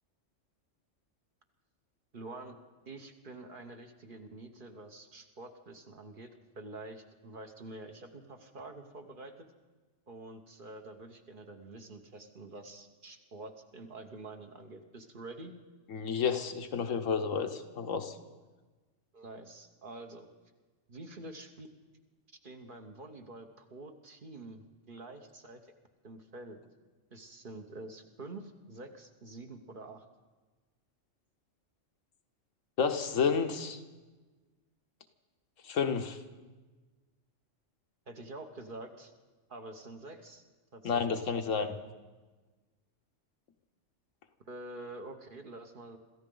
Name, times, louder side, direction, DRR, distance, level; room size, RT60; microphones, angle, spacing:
voice 1, 2.1-2.5 2.9-9.3 10.1-15.5 19.1-20.3 20.9-21.7 22.4-25.7 26.0-26.6 27.1-30.0 38.1-39.1 39.5-40.4 40.7-41.3 41.6-41.7 44.4-46.0, right 2 dB, 45° right, 5 dB, 1.2 m, -47 dB
voice 2, 15.9-18.1 32.8-33.8 35.6-36.2 40.8-41.7, left 6 dB, 85° left, 6 dB, 1.3 m, -30 dB
26.0 x 14.5 x 3.9 m, 1.3 s
omnidirectional pair, 1.3 m